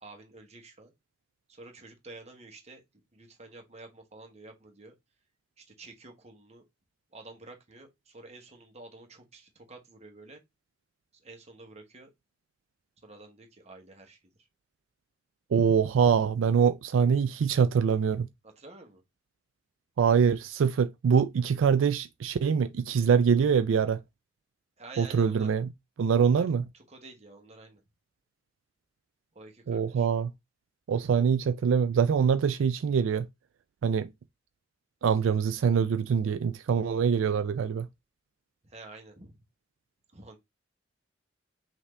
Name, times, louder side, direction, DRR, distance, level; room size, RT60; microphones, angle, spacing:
voice 1, 0.0-0.9 1.5-2.8 3.1-4.9 5.6-6.6 7.1-10.4 11.1-12.1 13.0-14.5 18.4-19.0 24.8-25.5 26.2-26.4 26.7-27.8 29.3-30.1 38.6-39.4 40.1-40.4, right 2 dB, 35° right, 1.2 m, -49 dB
voice 2, 15.5-18.3 20.0-24.0 25.0-25.7 26.0-26.6 29.7-30.3 30.9-33.3 33.8-34.1 35.0-37.9, right 6 dB, 85° right, 0.3 m, -24 dB
5.7 x 2.8 x 3.3 m
head